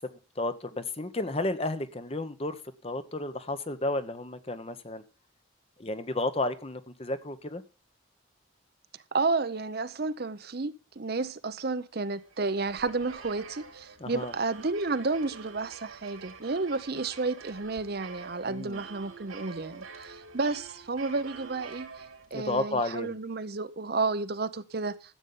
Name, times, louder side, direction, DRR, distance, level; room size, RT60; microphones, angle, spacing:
voice 1, 0.4-5.0 5.8-7.6 14.0-14.3 18.4-18.8 22.3-23.2, left 2 dB, 30° left, 1.0 m, -32 dB
voice 2, 9.1-21.9 22.3-24.9, right 3 dB, 50° right, 0.7 m, -31 dB
sound 1, 12.2-22.6, right 5 dB, 90° right, 3.3 m, -47 dB
13.5 x 8.2 x 5.5 m
head